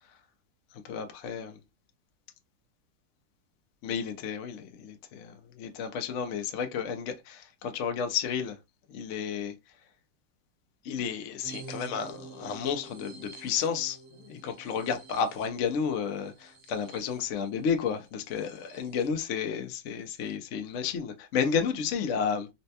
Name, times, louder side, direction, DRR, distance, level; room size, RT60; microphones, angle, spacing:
voice 1, 0.7-1.6 3.8-8.6 8.9-9.5 10.8-22.5, left 6 dB, 70° left, 0.7 m, -32 dB
sound 1, 11.4-19.1 19.5-19.6 19.9-20.4, right 4 dB, 50° right, 1.1 m, -49 dB
4.2 x 2.2 x 2.8 m
omnidirectional pair, 2.1 m